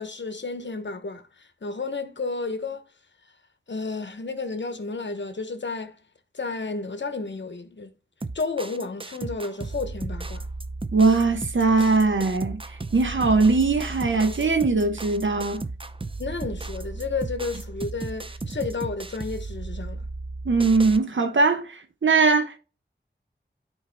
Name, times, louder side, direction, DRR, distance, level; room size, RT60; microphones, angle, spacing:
voice 1, 0.0-2.8 3.7-5.9 6.3-7.9 8.3-10.5 16.2-20.0, left 3 dB, 70° left, 1.0 m, -32 dB
sound 1, 8.2-21.0, right 3 dB, 25° right, 0.6 m, -35 dB
voice 2, 10.9-12.6 12.9-15.6 20.4-22.6, right 3 dB, 85° right, 1.0 m, -21 dB
13.0 x 4.6 x 2.2 m
wide cardioid pair, 65°, 19 cm